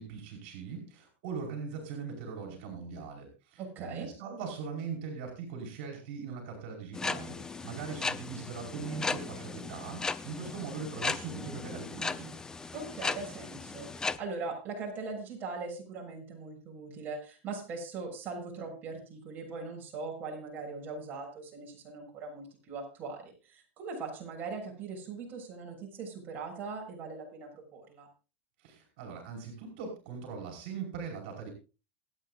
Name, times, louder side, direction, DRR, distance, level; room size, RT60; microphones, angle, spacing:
voice 1, 0.0-12.3 28.6-31.5, right 5 dB, 60° right, 1 dB, 5.2 m, -40 dB
voice 2, 3.6-4.1 12.7-28.1, right 4 dB, 30° right, -1 dB, 7.0 m, -40 dB
sound 1, 6.9-14.2, left 4 dB, 10° left, 0.6 m, -36 dB
27.5 x 9.2 x 2.5 m, 0.33 s
supercardioid pair, 155°, 7 cm